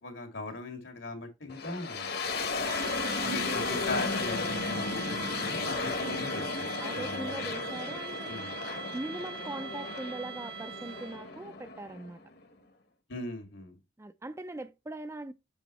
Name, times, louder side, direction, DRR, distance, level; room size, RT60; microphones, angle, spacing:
voice 1, 0.0-2.1 3.2-6.7 6.9-7.5 8.3-8.6 13.1-13.8, left 2 dB, 80° left, 2.3 m, -39 dB
sound 1, 1.5-12.4, left 4 dB, 55° left, 1.1 m, -34 dB
sound 2, 2.6-11.3, right 6 dB, 55° right, 0.7 m, -42 dB
voice 2, 6.8-8.3 8.9-12.2 14.0-15.3, right 2 dB, 15° right, 0.4 m, -40 dB
7.1 x 6.2 x 3.1 m
head